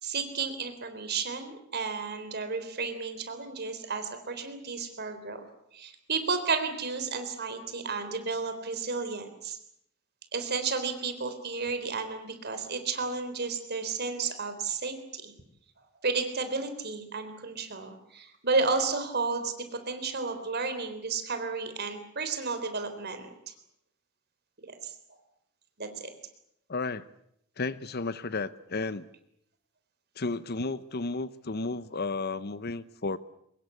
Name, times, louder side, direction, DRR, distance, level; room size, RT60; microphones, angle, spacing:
voice 1, 0.0-5.4 5.7-9.6 10.3-15.3 16.0-23.5 24.8-24.9 25.8-26.1, right 4 dB, 50° right, 8 dB, 3.8 m, -32 dB
voice 2, 26.7-27.1 27.6-29.0 30.2-33.2, left 3 dB, 45° left, 15 dB, 0.8 m, -33 dB
24.0 x 21.0 x 8.4 m, 0.75 s
head